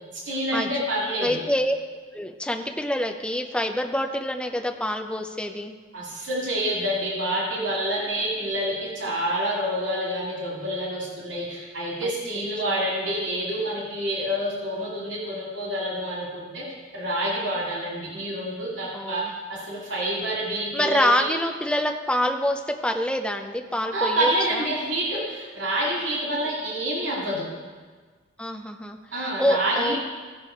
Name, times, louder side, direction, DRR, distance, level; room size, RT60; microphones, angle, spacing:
voice 1, 0.1-1.4 5.9-16.6 16.9-19.2 19.5-21.3 23.9-27.5 29.1-30.0, right 1 dB, 85° right, -4 dB, 2.4 m, -27 dB
voice 2, 1.2-1.8 2.1-5.7 12.0-12.1 12.7-12.8 18.9-19.3 20.7-24.3 28.4-30.0, left 1 dB, 5° left, 4 dB, 0.6 m, -26 dB
16.0 x 5.4 x 4.5 m, 1.4 s
head